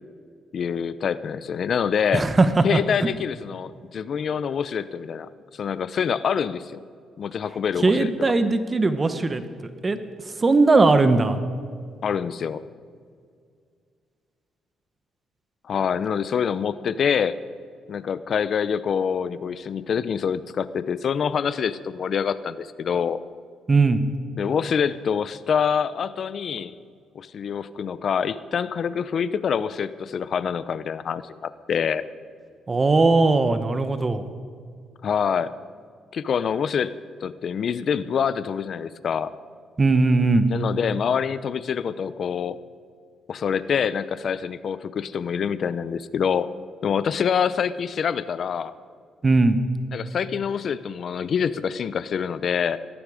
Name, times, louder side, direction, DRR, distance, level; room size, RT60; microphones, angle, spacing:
voice 1, 0.5-2.2 2.6-6.8 7.2-8.3 12.0-12.6 15.7-17.4 17.9-23.2 24.4-26.7 27.1-32.0 35.0-35.5 36.1-36.9 37.2-39.3 40.5-42.6 43.3-46.5 46.8-48.7 49.9-52.8, left 7 dB, 55° left, 15 dB, 0.6 m, -26 dB
voice 2, 2.1-2.6 3.0-3.1 7.8-9.4 9.8-10.0 10.4-11.4 23.7-24.0 32.7-34.3 39.8-40.5 49.2-49.6, right 3 dB, 30° right, 10 dB, 1.1 m, -19 dB
18.0 x 13.5 x 5.0 m, 2.2 s
cardioid pair, 90°, 0 cm